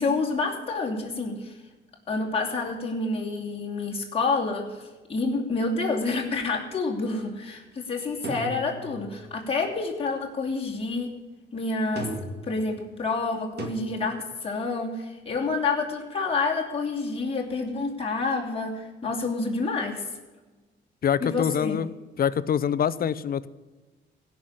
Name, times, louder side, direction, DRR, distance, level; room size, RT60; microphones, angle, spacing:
voice 1, 0.0-1.5 2.1-11.1 11.5-12.1 12.5-20.0 21.2-21.8, left 3 dB, 30° left, -1 dB, 2.8 m, -28 dB
sound 1, 8.2-9.2 12.0-12.6 13.6-13.7, right 3 dB, 55° right, 2.4 m, -35 dB
voice 2, 21.0-23.5, left 8 dB, 50° left, 16 dB, 0.7 m, -25 dB
16.5 x 5.9 x 9.7 m, 1.3 s
cardioid pair, 90°, 20 cm